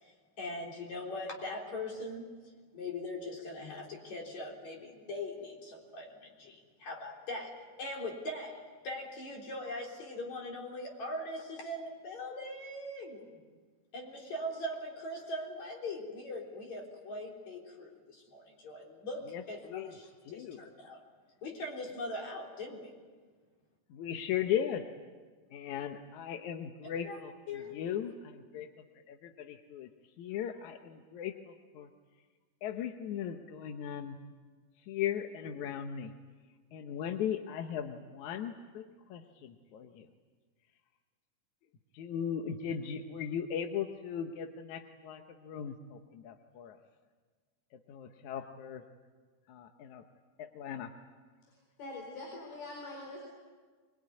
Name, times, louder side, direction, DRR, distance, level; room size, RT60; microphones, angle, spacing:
voice 1, 0.0-2.3 2.7-13.3 13.9-21.0 21.4-22.9 27.0-27.2 27.5-27.8, left 1 dB, 50° left, 0 dB, 4.8 m, -41 dB
voice 2, 19.3-19.9 20.3-20.7 23.9-24.8 25.5-27.3 27.7-28.7 29.1-29.9 30.2-31.9 32.6-34.2 34.9-36.1 36.7-38.8 39.1-40.1 41.9-46.8 47.9-48.8 49.5-50.0 50.4-50.9, left 9 dB, 65° left, 5 dB, 2.0 m, -37 dB
voice 3, 51.8-53.2, left 2 dB, 85° left, -1 dB, 6.4 m, -43 dB
24.0 x 22.0 x 9.7 m, 1.5 s
omnidirectional pair, 4.3 m